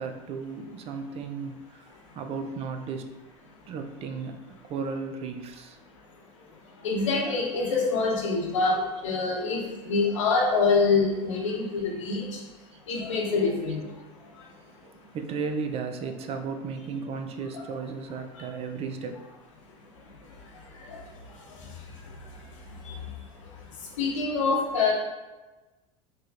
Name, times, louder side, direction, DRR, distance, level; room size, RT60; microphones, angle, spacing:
voice 1, 0.0-1.8 2.1-3.1 3.7-5.8 7.7-7.8 9.4-9.5 15.1-19.1 24.3-24.6, right 5 dB, 40° right, 6 dB, 0.5 m, -35 dB
voice 2, 5.8-15.1 18.3-18.4 19.6-24.9, left 4 dB, 90° left, -2 dB, 0.9 m, -28 dB
4.7 x 3.0 x 2.4 m, 1.2 s
hypercardioid pair, 95°, 16 cm